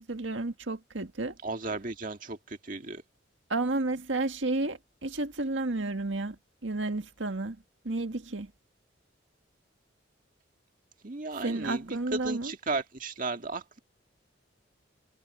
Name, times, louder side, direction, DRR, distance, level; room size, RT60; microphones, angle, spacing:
voice 1, 0.0-1.4 3.5-6.4 6.6-7.6 7.8-8.5 11.4-12.5, right 2 dB, 85° right, 1.8 m, -31 dB
voice 2, 1.4-3.0 11.0-13.8, right 3 dB, 45° right, 1.8 m, -35 dB
head